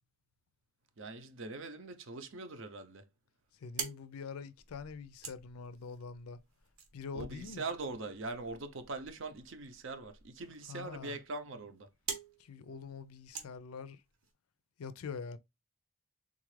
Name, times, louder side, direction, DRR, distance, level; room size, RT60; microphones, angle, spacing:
voice 1, 1.0-3.1 7.1-11.9, right 3 dB, 60° right, 0.6 m, -42 dB
sound 1, 3.4-14.3, right 6 dB, 85° right, 1.0 m, -48 dB
voice 2, 3.5-6.4 6.9-7.7 10.7-11.2 12.4-14.0 14.8-15.4, left 5 dB, 90° left, 0.4 m, -44 dB
3.7 x 2.4 x 3.1 m
head